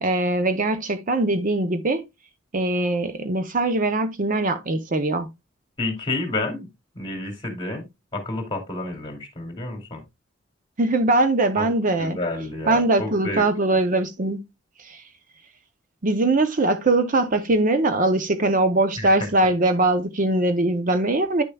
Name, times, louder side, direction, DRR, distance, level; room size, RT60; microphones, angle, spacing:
voice 1, 0.0-2.0 2.5-5.3 10.8-12.2 12.7-14.4 14.8-15.0 16.0-21.4, right 2 dB, 40° right, 0.7 m, -21 dB
voice 2, 5.8-6.7 6.9-10.0 11.6-11.7 12.0-13.4 19.0-19.1, left 2 dB, 25° left, 2.4 m, -30 dB
10.0 x 6.6 x 2.3 m
head